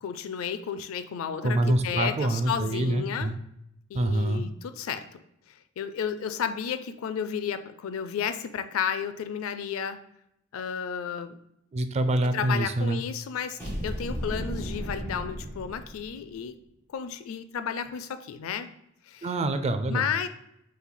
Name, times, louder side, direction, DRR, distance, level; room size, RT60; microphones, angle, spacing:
voice 1, 0.0-3.3 3.9-5.2 5.8-10.0 10.5-11.4 12.3-16.5 16.9-18.7 19.1-19.3 19.9-20.3, left 7 dB, 75° left, 10 dB, 0.4 m, -32 dB
voice 2, 1.4-3.4 3.9-4.4 11.7-13.0 19.2-20.1, right 1 dB, 30° right, 9 dB, 0.3 m, -26 dB
sound 1, 13.6-16.4, equal, 10° left, 1.5 m, -34 dB
5.6 x 3.2 x 2.2 m, 0.79 s
head